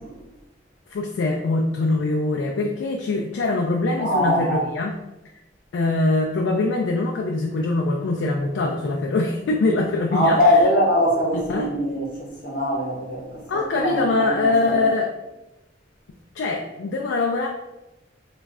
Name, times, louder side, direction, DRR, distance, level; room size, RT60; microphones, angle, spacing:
voice 1, 0.9-4.9 5.7-10.6 11.5-11.7 13.5-15.1 16.4-17.5, left 2 dB, 90° left, 0 dB, 0.3 m, -23 dB
voice 2, 4.0-4.6 10.1-13.2 13.5-14.8, equal, 50° left, -4 dB, 1.0 m, -22 dB
3.1 x 2.3 x 3.6 m, 0.98 s
head